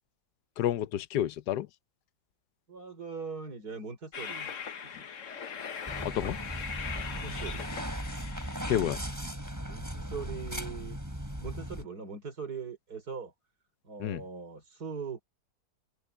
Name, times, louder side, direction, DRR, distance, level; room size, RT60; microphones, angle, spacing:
voice 1, 0.6-1.7 6.0-6.4 8.7-9.0 14.0-14.2, left 12 dB, 80° left, 1.3 m, -30 dB
voice 2, 2.7-5.1 7.0-7.6 9.7-11.0 11.4-13.3 13.8-15.2, right 5 dB, 70° right, 4.6 m, -41 dB
Train, 4.1-9.1, left 7 dB, 50° left, 1.4 m, -40 dB
sound 1, 5.9-11.8, equal, 10° right, 5.7 m, -37 dB
omnidirectional pair, 1.7 m